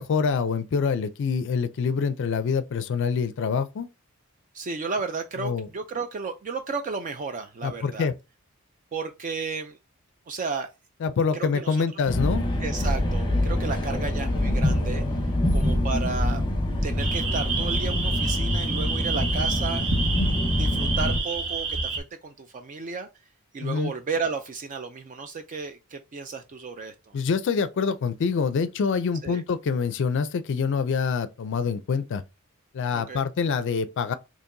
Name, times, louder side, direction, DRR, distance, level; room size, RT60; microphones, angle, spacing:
voice 1, 0.0-3.9 5.4-5.7 7.6-8.1 11.0-12.5 23.6-23.9 27.1-32.2 32.7-34.2, left 5 dB, 60° left, 0.4 m, -26 dB
voice 2, 4.5-8.1 8.9-9.8 10.3-10.7 11.3-12.0 12.6-15.0 15.5-16.4 16.8-19.9 20.5-23.1 23.5-27.1 29.2-29.4 32.9-33.2, right 4 dB, 35° right, 0.4 m, -33 dB
sound 1, 12.1-21.2, left 1 dB, 20° left, 0.8 m, -25 dB
sound 2, 17.0-22.0, right 4 dB, 70° right, 1.1 m, -29 dB
4.5 x 2.9 x 2.6 m
head